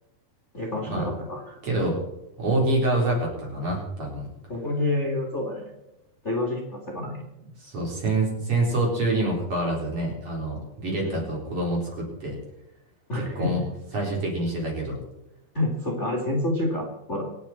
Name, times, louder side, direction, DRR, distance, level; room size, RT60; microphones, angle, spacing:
voice 1, 0.5-1.6 4.5-5.7 6.2-7.2 11.0-11.2 13.1-13.5 15.5-17.2, left 1 dB, 25° left, 0 dB, 2.0 m, -28 dB
voice 2, 1.6-2.0 2.4-4.3 7.6-12.4 13.1-13.6 13.9-15.0, right 2 dB, 45° right, -1 dB, 4.9 m, -26 dB
26.5 x 8.9 x 4.4 m, 0.92 s
omnidirectional pair, 3.8 m